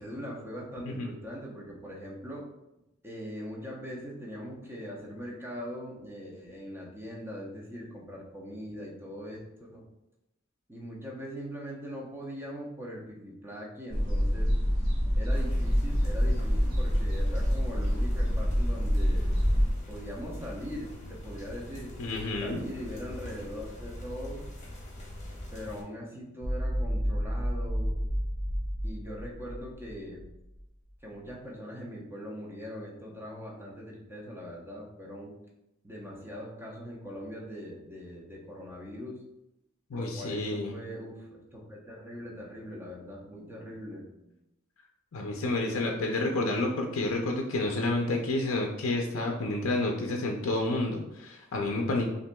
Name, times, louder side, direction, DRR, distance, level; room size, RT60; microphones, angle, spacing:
voice 1, 0.0-2.5 3.0-9.9 10.7-14.6 15.1-19.4 19.9-21.9 22.4-24.5 25.5-28.0 28.8-30.3 31.0-35.4 35.8-39.2 39.9-44.3, equal, 10° right, -3 dB, 0.7 m, -41 dB
sound 1, 13.9-19.7, equal, 40° right, 1.3 m, -26 dB
sound 2, 15.3-25.8, left 1 dB, 35° left, 1.0 m, -43 dB
voice 2, 22.0-22.6 39.9-40.8 45.1-52.1, left 2 dB, 70° left, 1 dB, 0.5 m, -30 dB
sound 3, 26.4-30.6, equal, 60° right, 0.8 m, -31 dB
5.8 x 2.6 x 2.2 m, 0.89 s
head